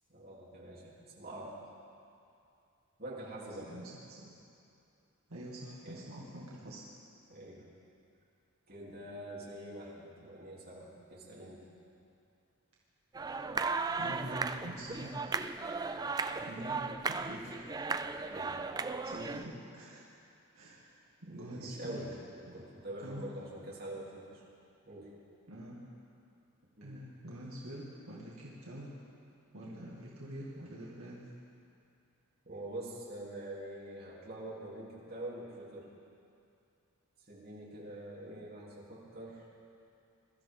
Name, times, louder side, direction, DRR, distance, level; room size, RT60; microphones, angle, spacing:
voice 1, 0.1-1.7 3.0-3.7 5.8-6.0 6.5-6.6 7.3-7.6 8.7-11.6 18.3-18.6 21.3-22.1 22.5-24.4 24.8-25.1 26.8-26.9 32.4-35.9 37.3-39.5, right 1 dB, 45° right, -7 dB, 3.4 m, -45 dB
voice 2, 5.3-6.8 14.0-15.4 16.4-16.8 17.1-17.6 19.0-20.1 20.5-20.9 21.2-22.0 22.5-22.6 23.0-23.3 25.5-25.8 26.8-28.9 29.5-31.3, right 1 dB, 75° right, -6 dB, 2.1 m, -45 dB
sound 1, 13.1-19.4, right 4 dB, 15° right, 0.3 m, -36 dB
22.5 x 13.0 x 3.8 m, 2.6 s
head